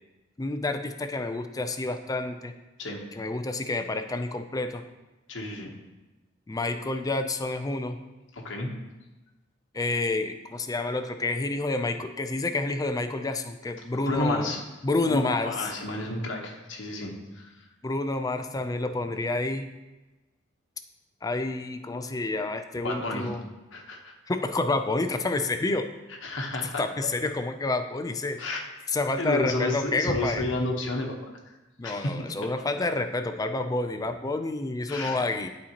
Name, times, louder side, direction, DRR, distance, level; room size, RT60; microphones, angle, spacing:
voice 1, 0.4-2.5 3.1-4.8 6.5-8.0 9.7-15.7 17.8-19.7 21.2-23.4 24.3-25.9 26.8-28.4 28.9-30.5 31.8-35.5, left 2 dB, 20° left, 8 dB, 0.4 m, -29 dB
voice 2, 5.3-5.7 8.4-8.7 13.9-14.6 15.0-17.5 22.7-23.3 23.7-24.1 26.2-27.1 28.4-28.6 29.2-31.2 31.8-32.1 34.9-35.2, left 2 dB, 75° left, 0 dB, 1.1 m, -31 dB
11.5 x 4.3 x 2.9 m, 1.1 s
head